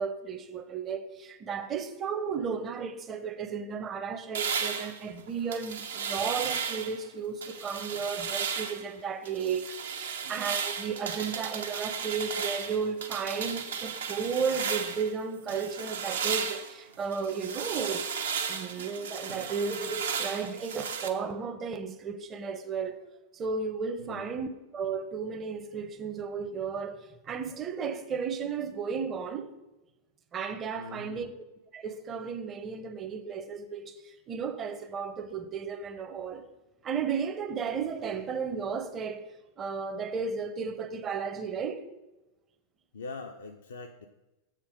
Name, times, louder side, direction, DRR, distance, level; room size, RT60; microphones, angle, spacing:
voice 1, 0.0-18.0 18.5-23.0 23.3-29.5 30.3-31.3 31.7-36.5 36.8-39.3 39.6-41.8, right 5 dB, 25° right, 0.7 m, -34 dB
sound 1, 4.4-7.0 7.4-8.9 9.3-15.1 15.5-21.1, right 6 dB, 65° right, 0.6 m, -34 dB
voice 2, 30.8-31.3 42.9-44.1, left 3 dB, 65° left, 0.5 m, -42 dB
7.1 x 4.5 x 5.0 m
figure-of-eight pair, 90°, 0 cm